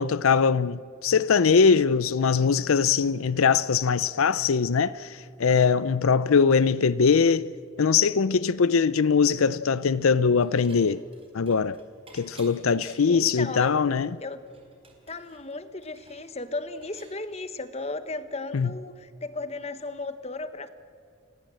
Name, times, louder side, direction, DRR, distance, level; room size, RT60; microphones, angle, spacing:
voice 1, 0.0-7.5 7.8-11.0 11.3-11.8 12.1-14.1 18.5-18.7, left 5 dB, 85° left, 0.5 m, -22 dB
Dishes pots and pans / Chink clink, 10.1-10.8 11.1-13.2 13.7-13.8 14.0-17.1, right 4 dB, 25° right, 3.8 m, -53 dB
voice 2, 13.1-13.8 14.2-14.4 15.1-20.7, left 3 dB, 30° left, 1.1 m, -35 dB
29.5 x 17.0 x 7.7 m
head